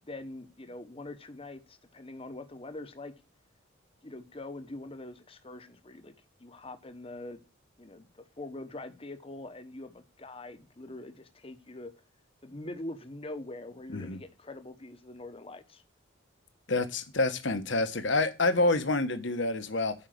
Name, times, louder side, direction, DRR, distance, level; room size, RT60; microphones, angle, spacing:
voice 1, 0.0-3.1 4.0-6.1 6.4-7.4 7.8-11.9 12.4-15.8, left 2 dB, 30° left, 1.1 m, -43 dB
voice 2, 16.7-19.9, left 2 dB, 65° left, 1.3 m, -27 dB
9.0 x 5.6 x 7.8 m
head